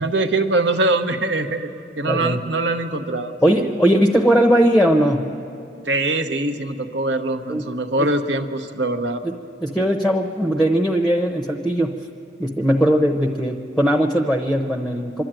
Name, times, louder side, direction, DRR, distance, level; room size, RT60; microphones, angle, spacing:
voice 1, 0.0-1.7 2.0-3.7 5.8-9.2, right 2 dB, 65° right, 7 dB, 1.1 m, -23 dB
voice 2, 2.1-2.5 3.4-5.3 7.5-7.7 8.0-8.1 9.2-9.3 9.6-11.9 12.4-15.2, equal, ahead, 3 dB, 0.8 m, -19 dB
24.0 x 12.5 x 9.0 m, 2.7 s
head